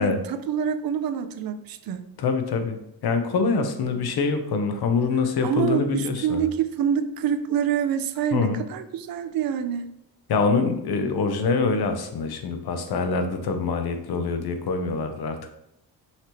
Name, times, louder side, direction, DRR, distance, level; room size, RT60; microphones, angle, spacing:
voice 1, 0.0-2.1 5.4-9.9, right 8 dB, 55° right, 11 dB, 0.5 m, -26 dB
voice 2, 2.2-6.4 8.3-8.6 10.3-15.5, left 4 dB, 55° left, 7 dB, 0.7 m, -25 dB
5.7 x 2.9 x 3.0 m, 0.81 s
cardioid pair, 105°, 44 cm